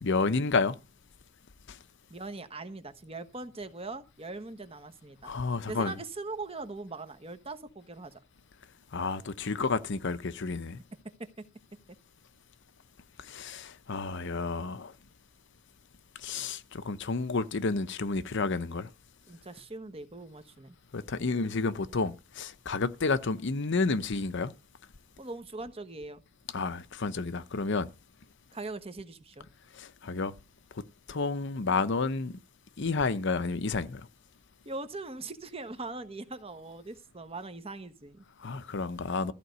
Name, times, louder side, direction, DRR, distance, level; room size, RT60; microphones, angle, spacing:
voice 1, 0.0-0.8 1.7-1.8 5.2-5.9 8.9-10.8 13.2-14.9 16.2-18.9 20.9-24.5 26.5-27.9 29.7-30.3 31.1-32.3 32.8-34.0 38.4-39.3, left 4 dB, 55° left, 0.7 m, -30 dB
voice 2, 2.1-5.3 5.7-8.2 11.2-11.4 19.3-20.8 25.2-26.2 28.5-29.5 34.6-38.2, right 3 dB, 25° right, 1.2 m, -41 dB
14.0 x 5.2 x 8.0 m
head